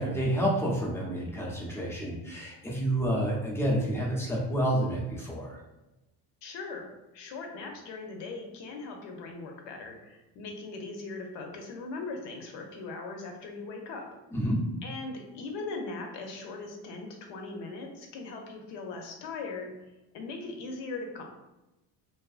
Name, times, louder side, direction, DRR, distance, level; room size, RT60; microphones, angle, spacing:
voice 1, 0.0-5.6 14.3-14.6, right 1 dB, 5° left, -4 dB, 0.5 m, -29 dB
voice 2, 6.4-6.9 7.1-14.0 14.8-19.7 20.1-21.2, left 3 dB, 80° left, 2 dB, 0.7 m, -39 dB
2.5 x 2.4 x 2.4 m, 0.97 s
cardioid pair, 135°, 42 cm